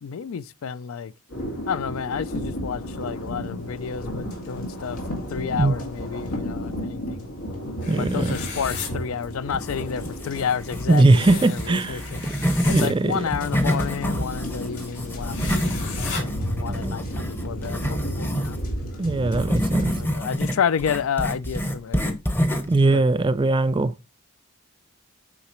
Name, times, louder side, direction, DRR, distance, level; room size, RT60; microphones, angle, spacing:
voice 1, 0.0-1.1 1.7-5.0 5.3-7.3 8.0-12.2 12.7-18.6 19.9-22.2 22.9-23.0, left 7 dB, 70° left, 0.4 m, -30 dB
sound 1, 1.3-20.1, equal, 90° left, 2.2 m, -33 dB
sound 2, 7.8-8.9 11.0-12.9 15.3-16.2, left 5 dB, 55° left, 3.2 m, -36 dB
voice 2, 7.9-8.4 10.9-12.0 12.7-13.3 16.3-17.0 19.0-19.9 22.7-23.9, right 2 dB, 20° right, 0.3 m, -20 dB
sound 3, 8.3-9.2 9.5-12.9 13.2-18.6 19.3-22.8, equal, 10° left, 0.7 m, -28 dB
8.5 x 4.8 x 3.0 m
head